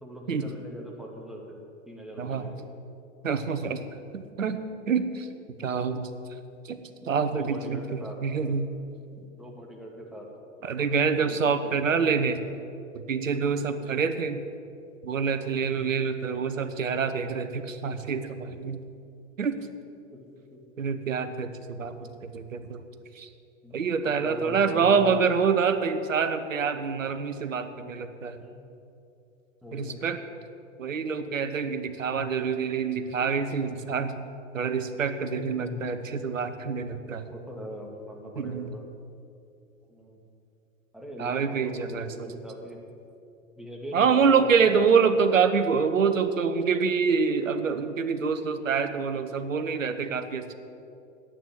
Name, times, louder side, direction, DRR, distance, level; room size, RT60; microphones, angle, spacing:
voice 1, 0.0-1.6 1.9-2.6 7.0-8.2 9.2-10.3 10.7-12.3 13.8-14.0 15.6-15.9 20.1-20.6 21.9-22.2 23.6-25.2 28.4-28.7 29.6-30.0 32.1-32.2 35.3-35.8 37.3-38.8 39.8-40.2 40.9-42.8 43.6-45.2, equal, ahead, -1 dB, 2.3 m, -42 dB
voice 2, 2.2-2.5 3.2-3.8 4.1-4.6 4.9-5.3 5.6-6.1 6.6-6.8 7.1-8.7 10.6-12.4 13.1-14.4 15.0-18.8 19.4-19.6 20.8-21.9 22.2-22.8 23.1-23.3 23.7-28.4 29.7-30.2 30.8-34.2 34.5-37.2 38.4-38.7 41.2-42.1 43.9-50.5, right 5 dB, 80° right, 10 dB, 1.1 m, -26 dB
9.2 x 8.8 x 9.4 m, 2.6 s
figure-of-eight pair, 95°, 38 cm